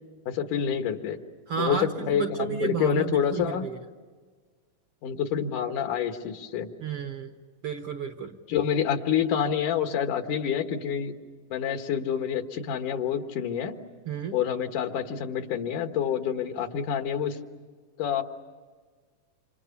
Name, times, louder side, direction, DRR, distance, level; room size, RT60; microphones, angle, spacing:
voice 1, 0.3-1.2 1.6-3.7 5.0-6.7 8.5-11.1 11.5-13.8 14.3-17.4 18.0-18.2, left 8 dB, 75° left, 6 dB, 3.0 m, -27 dB
voice 2, 1.5-3.8 6.8-7.3 7.6-8.4 14.1-14.4, right 6 dB, 55° right, 6 dB, 1.7 m, -32 dB
29.5 x 27.5 x 7.1 m, 1.5 s
omnidirectional pair, 3.6 m